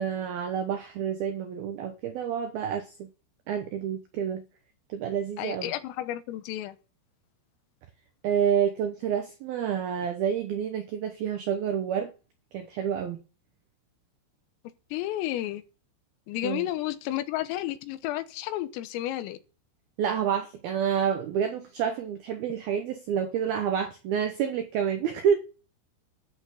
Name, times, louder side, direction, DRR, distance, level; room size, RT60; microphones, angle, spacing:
voice 1, 0.0-3.1 3.5-4.4 4.9-5.7 8.2-12.1 12.5-13.2 16.4-16.7 20.0-25.5, right 8 dB, 80° right, 2.1 m, -28 dB
voice 2, 5.4-6.8 14.9-15.6 16.3-19.4, left 14 dB, 80° left, 3.7 m, -32 dB
13.0 x 6.6 x 8.4 m
omnidirectional pair, 6.0 m